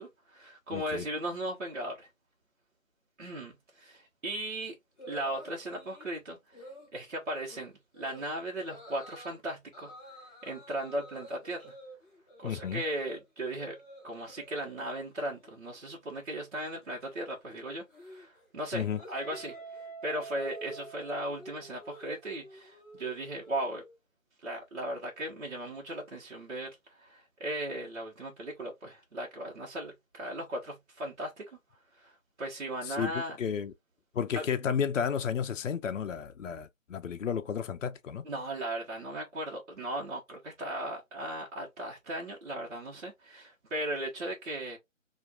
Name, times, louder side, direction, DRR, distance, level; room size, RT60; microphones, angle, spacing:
voice 1, 0.0-2.1 3.2-4.7 5.1-9.9 10.4-11.7 12.4-13.8 14.0-19.5 20.0-23.8 24.4-31.4 32.0-33.4 34.3-34.4 38.2-44.8, right 1 dB, 60° right, 1.2 m, -37 dB
voice 2, 0.7-1.0 12.4-12.8 18.7-19.0 32.8-33.7 34.1-38.2, left 7 dB, 70° left, 0.5 m, -32 dB
sound 1, 5.0-6.1 6.5-6.9 7.3-7.6 7.9-8.2 8.6-9.4 9.7-13.2 13.5-14.8 15.1-15.5 15.8-24.0, right 1 dB, 15° left, 1.3 m, -51 dB
Guitar, 19.2-22.0, right 4 dB, 35° right, 0.9 m, -46 dB
4.3 x 2.5 x 2.3 m
figure-of-eight pair, 160°, 40 cm